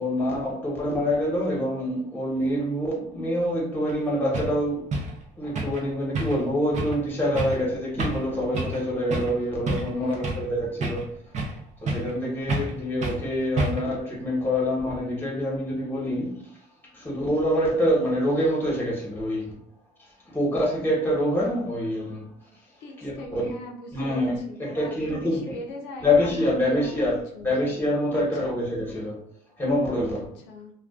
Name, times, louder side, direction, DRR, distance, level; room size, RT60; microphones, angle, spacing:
voice 1, 0.0-4.9 5.4-11.1 11.8-16.4 16.8-19.6 20.0-22.4 23.0-23.5 23.9-25.6 26.0-27.2 27.4-29.2 29.6-30.3, left 1 dB, 10° left, 1.0 m, -26 dB
sound 1, 3.9-4.0 4.3-4.5 4.9-5.1 5.5-5.8 6.1-6.5 6.7-7.0 7.3-7.6 8.0-8.3 8.5-8.8 9.1-9.3 9.7-10.5 10.8-11.6 11.9-12.2 12.5-12.7 13.0-13.2 13.6-13.9, right 2 dB, 45° right, 0.6 m, -29 dB
voice 2, 9.9-10.5 22.8-27.1 27.3-27.5 28.1-28.6 30.2-30.7, left 1 dB, 90° left, 0.5 m, -41 dB
2.4 x 2.2 x 2.3 m
cardioid pair, 110°, 17 cm